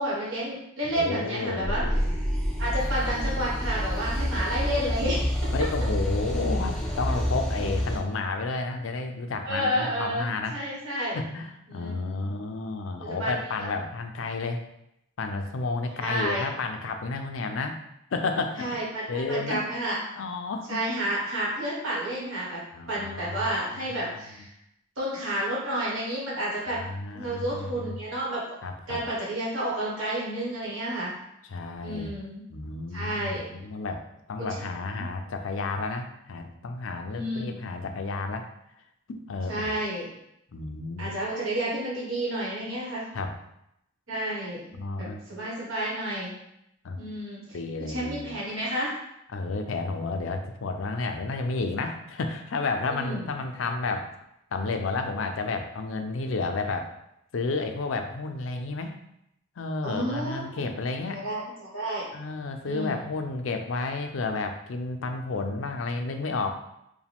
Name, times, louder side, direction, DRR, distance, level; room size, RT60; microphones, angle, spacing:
voice 1, 0.0-1.8 2.6-5.5 9.4-11.2 11.7-12.3 13.0-13.3 13.6-13.7 16.0-16.4 18.6-20.0 20.7-22.6 22.9-24.5 25.0-26.8 27.1-28.6 28.9-31.1 31.8-32.4 32.9-33.5 34.4-34.7 35.0-35.1 37.1-37.6 39.5-40.1 41.0-43.0 44.1-44.6 45.3-46.3 47.0-47.4 47.8-48.9 53.0-53.3 59.8-60.7 61.1-62.1 62.6-63.0, right 1 dB, 80° right, -6 dB, 1.5 m, -30 dB
voice 2, 0.9-2.1 5.5-10.6 11.1-14.6 15.2-17.8 18.1-18.7 19.1-19.7 20.2-20.8 22.7-23.4 23.8-24.1 26.7-27.9 28.6-29.0 31.5-32.1 32.5-34.0 34.3-38.5 39.1-39.7 40.5-41.1 43.1-43.3 44.7-45.2 46.8-47.0 47.5-48.3 49.3-54.1 54.5-56.9 57.3-59.0 59.6-61.2 62.1-66.5, left 3 dB, 75° left, 6 dB, 0.4 m, -31 dB
sound 1, 1.6-8.0, equal, 5° left, 0.5 m, -28 dB
4.7 x 2.2 x 3.5 m, 0.81 s
head